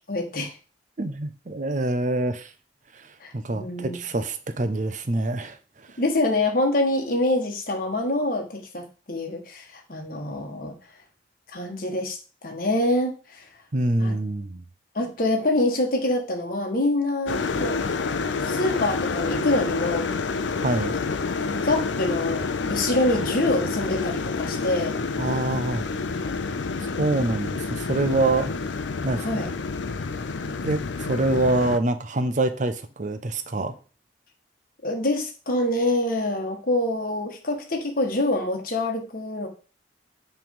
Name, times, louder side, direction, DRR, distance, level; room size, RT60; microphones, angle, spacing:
voice 1, 0.1-0.5 3.2-4.0 6.0-10.7 11.5-12.2 12.4-13.4 14.0-14.2 14.9-17.8 18.4-20.1 21.6-25.0 29.2-29.5 34.8-39.5, left 1 dB, 50° left, 1.4 m, -25 dB
voice 2, 1.0-2.5 2.9-3.1 3.3-5.6 5.9-6.0 13.7-14.6 20.6-21.0 25.1-25.9 27.0-28.5 29.0-29.3 30.6-33.8, right 2 dB, 40° right, 0.6 m, -25 dB
sound 1, 17.3-31.8, left 4 dB, 80° left, 0.5 m, -28 dB
6.0 x 3.3 x 5.3 m
head